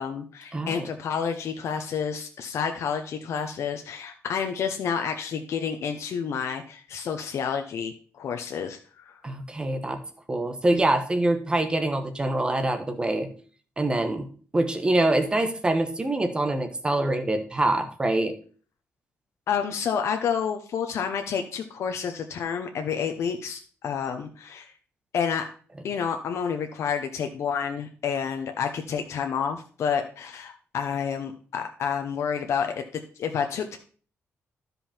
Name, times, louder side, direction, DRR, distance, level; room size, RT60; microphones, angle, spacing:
voice 1, 0.0-9.1 19.5-24.6 25.1-25.5 25.8-32.8 33.2-33.8, left 7 dB, 65° left, 5 dB, 0.9 m, -29 dB
voice 2, 0.5-0.9 9.2-10.0 10.3-13.3 13.8-18.4, right 2 dB, 20° right, 7 dB, 1.2 m, -25 dB
12.5 x 5.4 x 4.4 m, 0.43 s
cardioid pair, 140°, 5 cm